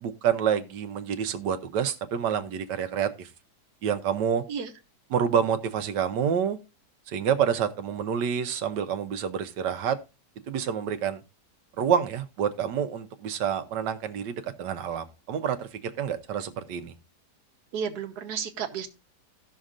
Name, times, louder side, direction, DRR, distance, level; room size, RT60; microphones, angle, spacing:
voice 1, 0.0-3.3 3.8-4.4 5.1-6.6 7.1-10.0 10.5-11.2 11.8-16.9, right 8 dB, 85° right, 1.4 m, -28 dB
voice 2, 17.7-18.9, right 7 dB, 70° right, 1.5 m, -32 dB
17.0 x 6.3 x 2.5 m
omnidirectional pair, 1.8 m